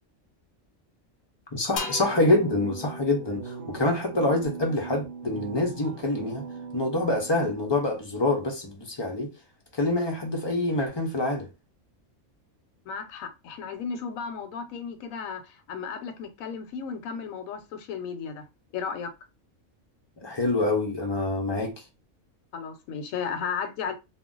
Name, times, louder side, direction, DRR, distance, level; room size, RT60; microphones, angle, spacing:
voice 1, 1.5-6.4 6.7-9.3 9.7-11.5 20.2-21.8, left 2 dB, 40° left, 0.3 m, -26 dB
sound 1, 1.8-5.4, left 4 dB, 60° left, 0.7 m, -40 dB
sound 2, 2.0-7.7, right 5 dB, 70° right, 0.9 m, -40 dB
voice 2, 12.8-18.4 18.7-19.1 22.5-23.9, left 6 dB, 85° left, 1.0 m, -34 dB
2.4 x 2.1 x 3.7 m
omnidirectional pair, 1.4 m